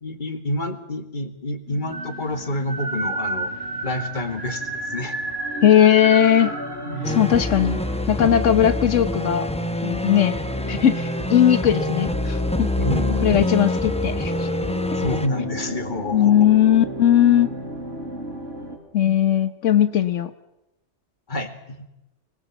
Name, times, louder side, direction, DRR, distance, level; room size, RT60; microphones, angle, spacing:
voice 1, 0.0-3.5 3.8-5.2 12.8-13.3 14.9-16.4 21.3-21.9, left 1 dB, 40° left, 8 dB, 2.2 m, -28 dB
sound 1, 1.7-18.8, right 1 dB, 60° right, 4.5 m, -32 dB
voice 2, 5.6-6.5 7.1-7.8 8.1-9.5 9.8-10.4 10.7-12.7 13.2-14.3 16.1-17.5 18.9-20.3, left 10 dB, 90° left, 10 dB, 1.4 m, -18 dB
sound 2, 7.0-15.3, left 1 dB, 5° left, 0.9 m, -26 dB
25.0 x 21.0 x 7.2 m, 0.92 s
omnidirectional pair, 1.2 m